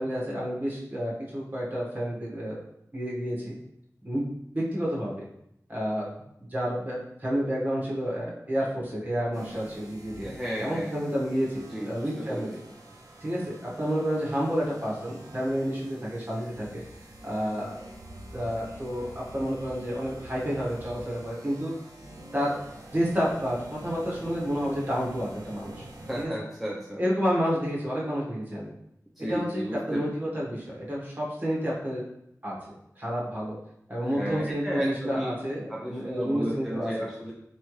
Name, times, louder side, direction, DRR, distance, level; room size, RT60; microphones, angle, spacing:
voice 1, 0.0-2.6 2.9-3.5 4.0-4.3 4.5-5.2 5.7-6.1 6.4-10.3 10.6-12.6 13.2-16.8 17.2-17.9 18.3-21.7 22.3-22.6 22.9-23.6 23.8-25.8 26.2-26.3 27.0-28.7 29.3-29.6 29.9-32.0 32.4-32.5 33.0-33.5 33.9-36.9, equal, 30° right, -5 dB, 1.3 m, -30 dB
sound 1, 9.3-26.3, right 1 dB, 85° right, 0.6 m, -46 dB
voice 2, 10.2-10.9 11.7-12.5 26.1-27.0 29.2-30.0 34.0-35.3 35.7-37.3, equal, ahead, -4 dB, 0.5 m, -33 dB
3.6 x 3.3 x 3.1 m, 0.77 s
wide cardioid pair, 80°, 6 cm